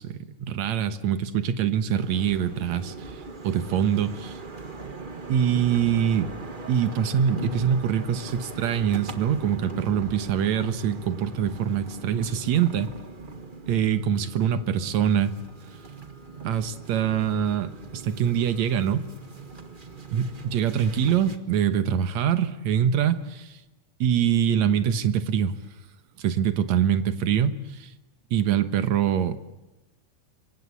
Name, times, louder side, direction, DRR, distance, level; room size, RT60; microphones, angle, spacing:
voice 1, 0.0-3.2 3.4-4.4 5.3-6.3 6.7-12.9 13.7-15.3 16.4-19.1 20.1-23.6 24.0-25.5 26.2-27.9 28.3-29.4, right 8 dB, 65° right, 10 dB, 2.3 m, -24 dB
sound 1, 1.9-21.4, right 3 dB, 35° right, 0.8 m, -40 dB
27.0 x 24.0 x 8.3 m, 1.0 s
omnidirectional pair, 3.6 m